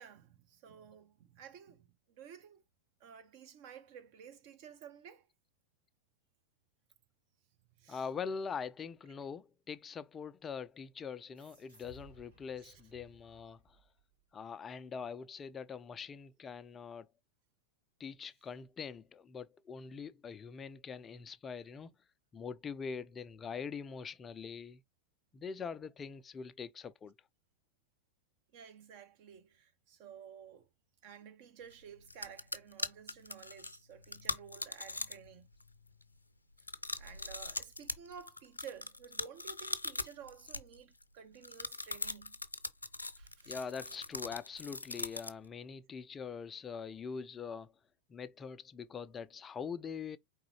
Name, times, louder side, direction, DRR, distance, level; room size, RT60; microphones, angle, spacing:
voice 1, 0.0-2.6 3.0-5.3 7.8-8.0 12.6-12.7 28.5-30.7 31.0-35.5 37.0-42.4 43.2-43.6, right 8 dB, 45° right, 1.0 m, -53 dB
voice 2, 7.9-13.8 14.3-17.1 18.0-21.9 22.3-24.8 25.3-27.2 43.5-47.7 48.1-50.2, left 6 dB, 20° left, 0.4 m, -43 dB
sound 1, 11.3-14.4, left 2 dB, 75° right, 2.3 m, -61 dB
sound 2, 31.7-31.8 32.1-35.3 35.6-36.0 36.6-41.0 41.4-45.5, left 2 dB, 80° left, 0.6 m, -40 dB
4.7 x 3.6 x 3.1 m
figure-of-eight pair, 90°, 0 cm